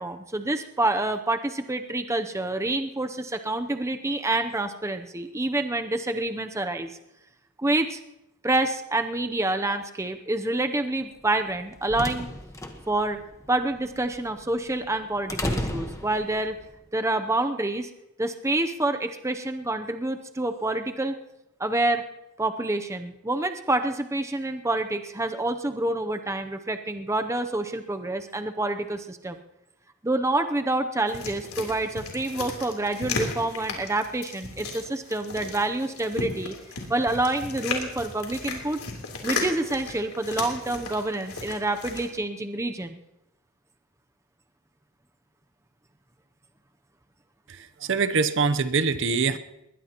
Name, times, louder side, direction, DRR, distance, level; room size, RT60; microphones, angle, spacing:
voice 1, 0.0-7.0 7.6-8.0 8.4-12.3 12.9-13.2 13.5-16.6 16.9-17.9 18.2-21.1 21.6-22.0 22.4-29.4 30.0-36.5 36.9-38.8 39.2-43.0, right 2 dB, 15° right, 7 dB, 0.6 m, -27 dB
sound 1, 11.4-16.7, left 1 dB, 15° left, 1.2 m, -34 dB
sound 2, 31.1-42.1, left 4 dB, 85° left, 3.4 m, -35 dB
voice 2, 47.5-49.4, right 4 dB, 55° right, 11 dB, 0.7 m, -24 dB
21.5 x 20.0 x 3.0 m, 0.90 s
head